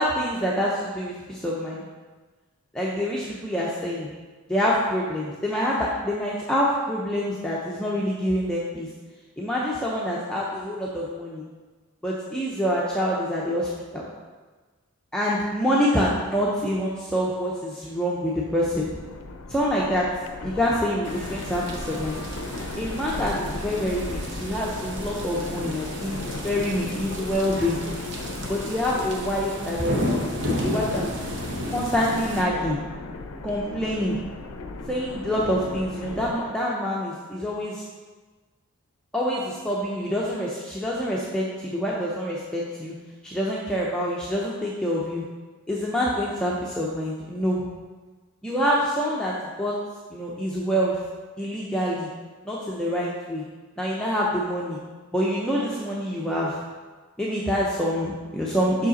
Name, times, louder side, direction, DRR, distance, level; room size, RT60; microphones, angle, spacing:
voice 1, 0.0-1.8 2.7-4.1 4.5-8.9 9.4-11.4 12.0-14.1 15.1-18.9 19.5-20.1 20.4-22.2 22.8-27.8 28.5-31.1 31.7-32.8 33.4-34.2 34.9-37.8 39.1-43.0 43.2-45.2 45.7-47.7 48.4-49.8 50.1-51.0 51.4-52.1 52.5-53.4 53.8-54.8 55.1-56.5 57.2-58.9, equal, 5° left, -5 dB, 0.5 m, -26 dB
sound 1, 18.7-36.3, left 3 dB, 75° left, 0.5 m, -37 dB
sound 2, 21.0-32.4, equal, 55° right, 0.8 m, -33 dB
5.7 x 5.1 x 4.0 m, 1.3 s
head